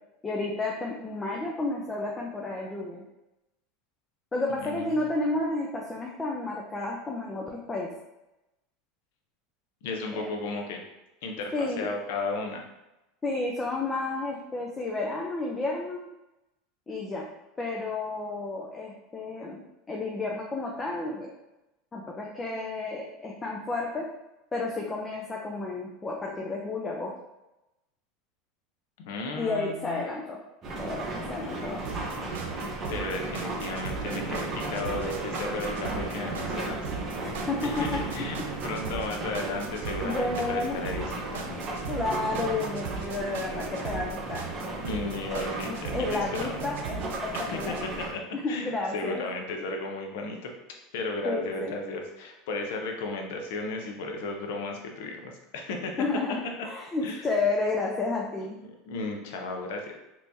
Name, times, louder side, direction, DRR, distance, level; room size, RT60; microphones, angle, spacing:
voice 1, 0.2-3.0 4.3-7.9 10.1-10.3 11.5-11.9 13.2-16.1 16.9-17.3 17.6-19.6 19.9-21.3 21.9-24.0 24.5-27.1 29.4-30.4 30.7-32.1 37.2-38.0 40.0-40.8 41.9-44.4 45.6-47.8 48.3-49.2 51.2-51.8 56.0-58.6, left 3 dB, 20° left, -1 dB, 0.5 m, -31 dB
voice 2, 4.6-4.9 9.8-10.8 11.2-12.6 29.0-30.0 32.9-37.0 37.6-38.4 38.6-41.6 44.8-46.2 47.3-47.7 48.5-50.5 50.9-55.9 57.0-57.3 58.6-59.9, left 3 dB, 75° left, 2 dB, 0.7 m, -34 dB
sound 1, 30.6-48.1, right 2 dB, 35° right, 1.0 m, -35 dB
sound 2, 31.8-47.8, right 7 dB, 85° right, 0.4 m, -39 dB
3.4 x 2.9 x 2.6 m, 0.95 s
supercardioid pair, 115°, 0 cm